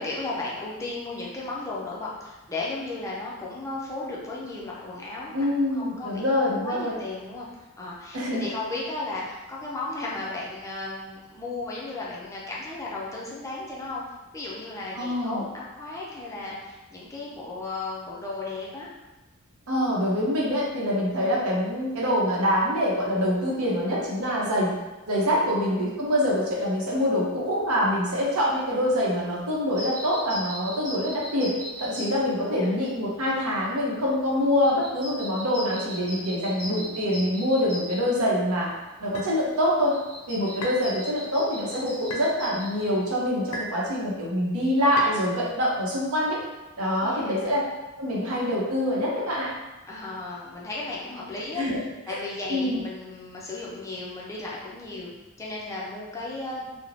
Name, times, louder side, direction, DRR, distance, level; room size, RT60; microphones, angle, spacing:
voice 1, 0.0-7.5 7.8-14.0 14.3-18.9 25.4-25.5 26.0-26.1 31.8-31.9 32.5-32.7 46.8-47.6 49.9-51.6 52.1-55.1 55.4-56.7, left 2 dB, 15° left, -5 dB, 0.4 m, -35 dB
voice 2, 5.3-7.0 8.1-8.5 14.9-15.4 19.7-24.7 25.1-31.5 31.8-38.7 39.0-39.9 40.3-46.4 46.8-47.6 48.0-49.5 51.5-51.8 52.1-52.2 52.5-52.8, equal, 75° right, -4 dB, 0.7 m, -25 dB
sound 1, 29.7-43.3, equal, 50° right, 1.2 m, -40 dB
sound 2, 39.1-39.3 40.6-40.9 42.1-42.3 43.5-43.8 45.0-45.2, left 1 dB, 80° left, 0.5 m, -33 dB
2.5 x 2.0 x 3.1 m, 1.1 s
head